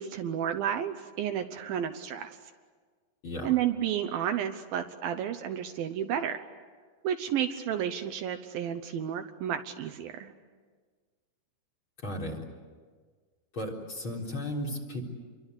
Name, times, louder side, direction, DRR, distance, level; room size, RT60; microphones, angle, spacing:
voice 1, 0.0-2.4 3.4-6.4 7.0-10.3, right 9 dB, 75° right, 7 dB, 2.6 m, -31 dB
voice 2, 12.0-12.4 13.5-15.0, left 1 dB, 30° left, 1 dB, 4.4 m, -35 dB
29.0 x 23.5 x 8.3 m, 1.5 s
omnidirectional pair, 4.5 m